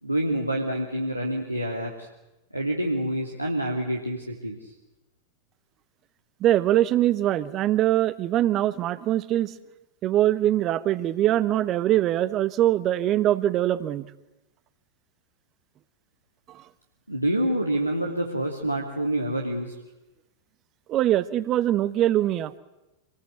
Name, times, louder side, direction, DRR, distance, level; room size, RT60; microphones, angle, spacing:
voice 1, 0.0-2.1 2.5-4.7 17.1-19.7, right 1 dB, 90° right, -1 dB, 2.7 m, -27 dB
voice 2, 6.4-9.6 10.0-14.1 16.5-16.6 20.9-22.5, right 13 dB, 35° right, 16 dB, 1.2 m, -23 dB
27.0 x 20.5 x 8.2 m, 1.0 s
figure-of-eight pair, 90°, 0 cm